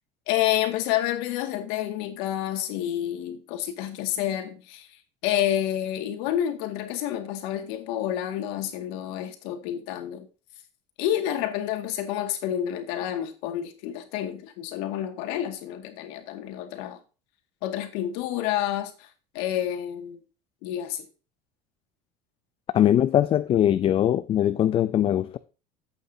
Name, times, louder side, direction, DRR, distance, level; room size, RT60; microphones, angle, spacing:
voice 1, 0.3-4.9 5.2-10.3 11.0-17.0 17.6-19.1 19.3-20.2 20.6-21.1, left 11 dB, 80° left, 2.0 m, -29 dB
voice 2, 22.7-25.4, left 11 dB, 35° left, 0.4 m, -21 dB
11.5 x 8.4 x 2.7 m
cardioid pair, 135°, 17 cm